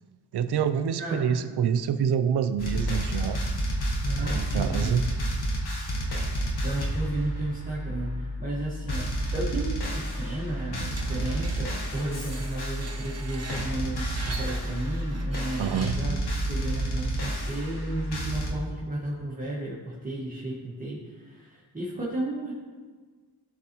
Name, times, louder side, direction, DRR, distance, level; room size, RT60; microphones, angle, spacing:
voice 1, 0.3-3.4 4.3-5.0 15.6-15.9, right 8 dB, 70° right, 10 dB, 0.6 m, -26 dB
voice 2, 1.0-1.3 4.0-5.0 6.6-16.2 16.5-22.5, right 1 dB, 20° right, -7 dB, 1.6 m, -33 dB
sound 1, 2.6-18.5, right 1 dB, 65° left, 1.3 m, -30 dB
Screech, 10.9-16.2, right 3 dB, 35° right, 1.0 m, -42 dB
12.0 x 4.1 x 3.0 m, 1.4 s
cardioid pair, 50°, 41 cm